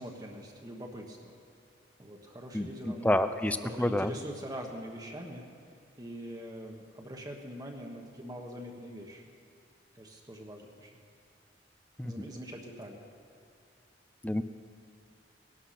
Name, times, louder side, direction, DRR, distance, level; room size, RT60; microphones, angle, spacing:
voice 1, 0.0-1.4 2.0-3.3 3.6-5.4 6.0-9.2 9.9-10.9 12.0-13.0, equal, 20° right, 0 dB, 1.3 m, -43 dB
voice 2, 2.5-4.1 12.0-12.3 14.2-14.4, left 1 dB, 10° left, 11 dB, 0.5 m, -29 dB
19.0 x 11.5 x 5.9 m, 2.5 s
head